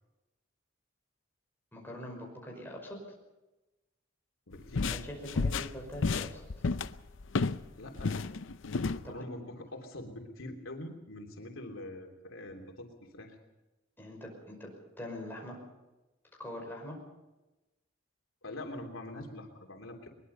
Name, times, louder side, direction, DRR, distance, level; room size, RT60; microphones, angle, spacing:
voice 1, 1.7-3.0 4.9-6.4 9.0-9.1 14.0-14.7 15.0-15.6 16.4-17.0, left 1 dB, 10° left, -1 dB, 5.7 m, -43 dB
voice 2, 4.5-5.0 7.7-8.2 8.9-13.4 18.4-20.1, left 1 dB, 85° left, 2 dB, 3.2 m, -44 dB
sound 1, 4.5-7.7 8.0-9.0, left 4 dB, 65° left, 0.6 m, -31 dB
22.0 x 21.0 x 5.5 m, 1.1 s
head